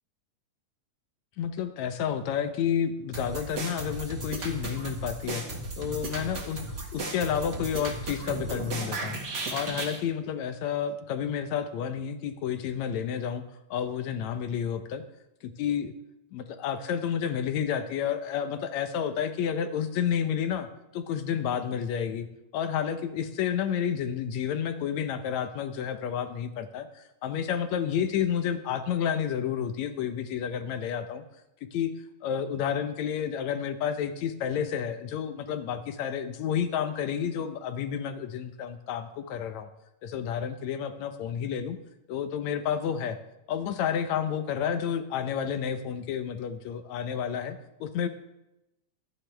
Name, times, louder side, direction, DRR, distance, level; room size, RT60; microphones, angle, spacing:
voice 1, 1.4-5.4 5.8-6.6 6.9-9.2 9.5-13.4 13.7-15.0 15.6-15.9 16.3-20.7 20.9-22.3 22.5-31.2 31.7-31.9 32.2-39.7 40.0-41.8 42.1-43.2 43.5-48.1, left 8 dB, 75° left, 9 dB, 2.1 m, -30 dB
sound 1, 3.1-10.0, right 2 dB, 40° right, 2.1 m, -35 dB
23.5 x 9.9 x 3.4 m, 0.91 s
omnidirectional pair, 3.3 m